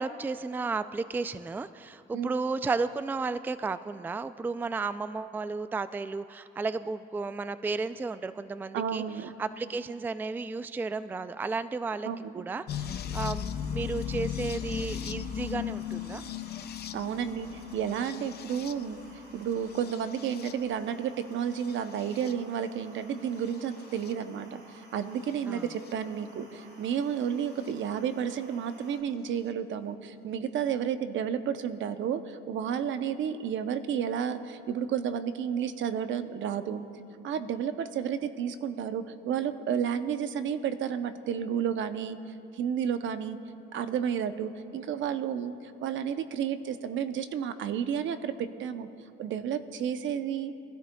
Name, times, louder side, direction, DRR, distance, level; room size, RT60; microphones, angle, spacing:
voice 1, 0.0-9.0 9.4-12.1 12.3-16.2 25.5-25.7, right 4 dB, 10° right, 13 dB, 0.3 m, -33 dB
voice 2, 8.7-9.3 12.0-12.4 16.9-19.0 19.3-36.9 37.2-42.2 42.5-43.4 43.7-48.9 49.2-50.5, right 8 dB, 75° right, 10 dB, 0.7 m, -31 dB
sound 1, 12.7-20.8 21.5-22.3 23.5-24.1 25.9-26.0 27.7-27.8, left 9 dB, 55° left, 0.5 m, -37 dB
sound 2, 12.7-29.0, right 2 dB, 55° right, 2.8 m, -54 dB
22.5 x 12.5 x 2.3 m, 2.7 s
cardioid pair, 90°, 20 cm